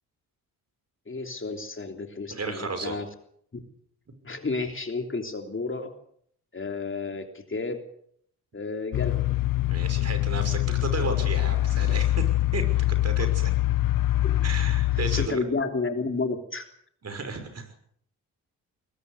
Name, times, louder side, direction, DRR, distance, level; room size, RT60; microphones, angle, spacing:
voice 1, 1.1-3.1 4.2-5.9 6.5-7.8 8.5-9.2 14.2-14.4 15.1-16.6, left 3 dB, 30° left, 5 dB, 3.3 m, -31 dB
voice 2, 2.3-3.0 9.7-13.5 14.4-15.4 17.0-17.7, right 3 dB, 40° right, 8 dB, 6.0 m, -33 dB
sound 1, 8.9-15.3, left 15 dB, 55° left, 0.9 m, -24 dB
21.5 x 20.5 x 6.8 m, 0.66 s
supercardioid pair, 55°, 39 cm